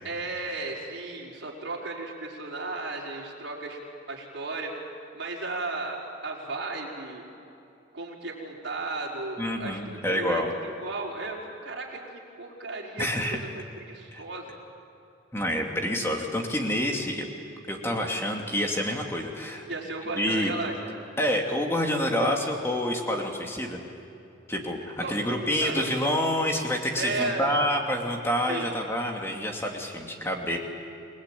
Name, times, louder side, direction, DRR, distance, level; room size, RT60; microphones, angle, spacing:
voice 1, 0.0-3.8 4.1-4.7 5.1-6.0 6.2-7.3 7.9-9.8 10.1-12.0 12.4-14.5 19.7-20.7 22.1-22.4 25.0-25.2 25.5-25.9 27.0-27.5 28.5-28.7, right 3 dB, 65° right, -3 dB, 5.2 m, -34 dB
voice 2, 9.4-10.5 13.0-13.4 14.1-14.2 15.3-17.3 17.7-19.7 20.1-20.5 21.2-23.8 24.5-30.6, equal, 10° left, 1 dB, 2.6 m, -27 dB
28.0 x 20.0 x 9.2 m, 2.8 s
head